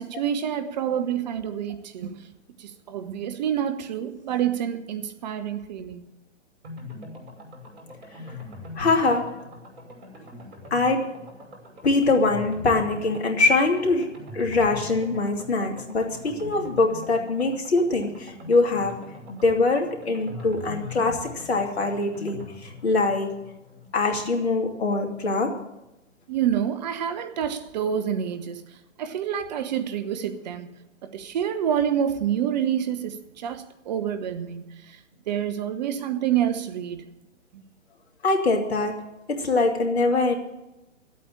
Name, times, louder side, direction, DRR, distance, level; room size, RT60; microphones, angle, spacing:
voice 1, 0.0-2.3 2.6-6.1 26.3-30.7 31.0-35.0 35.3-37.0 37.5-37.6, right 9 dB, 35° right, 1.0 m, -28 dB
sound 1, 6.6-25.3 25.5-25.6 25.9-26.0, left 2 dB, 60° right, 5.6 m, -42 dB
voice 2, 8.8-9.4 10.7-11.1 11.8-23.4 23.9-25.6 38.2-40.3, left 3 dB, 60° left, 2.8 m, -23 dB
13.0 x 8.5 x 8.6 m
figure-of-eight pair, 125°, 36 cm